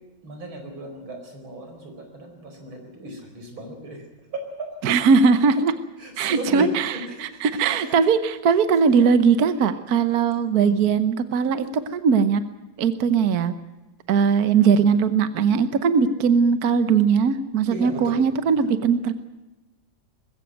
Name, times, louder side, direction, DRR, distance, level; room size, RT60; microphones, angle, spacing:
voice 1, 0.2-4.1 4.3-4.8 5.5-5.6 6.0-8.0 8.5-8.6 9.6-9.8 10.5-10.9 11.6-11.7 17.7-18.7, right 1 dB, 85° right, 4 dB, 5.4 m, -36 dB
voice 2, 4.8-5.7 6.2-6.9 7.2-12.4 12.8-13.5 14.1-19.1, right 6 dB, 55° right, 11 dB, 1.4 m, -20 dB
21.0 x 16.0 x 9.1 m, 1.1 s
omnidirectional pair, 2.1 m